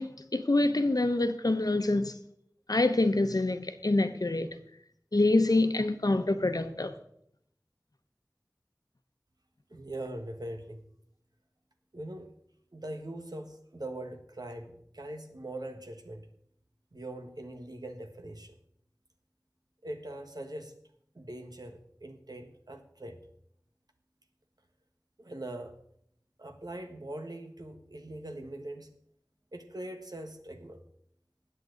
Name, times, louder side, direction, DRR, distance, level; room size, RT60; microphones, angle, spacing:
voice 1, 0.0-2.2 2.7-4.5 5.1-6.9, left 2 dB, 70° left, 1.0 m, -26 dB
voice 2, 9.7-10.8 11.9-12.3 12.7-16.3 16.9-18.5 19.8-20.7 21.1-23.2 25.2-25.8 26.4-28.9 29.5-30.8, right 1 dB, 80° right, 1.5 m, -42 dB
20.0 x 7.7 x 4.0 m
wide cardioid pair, 40°, 7 cm